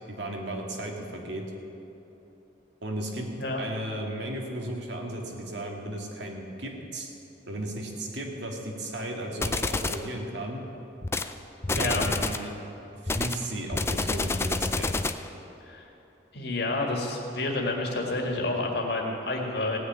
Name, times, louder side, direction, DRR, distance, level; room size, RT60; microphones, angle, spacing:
voice 1, 0.1-1.4 2.8-3.3 3.6-7.1 7.5-10.6 11.8-12.5 13.1-15.0, right 1 dB, 70° right, 1 dB, 2.0 m, -35 dB
sound 1, 9.4-10.1 11.0-11.3 11.6-12.5 13.1-15.3, left 3 dB, 15° left, 0.4 m, -28 dB
voice 2, 11.7-12.1 15.7-15.9 16.3-19.8, left 2 dB, 60° left, 0 dB, 2.0 m, -29 dB
17.5 x 6.5 x 8.8 m, 3.0 s
head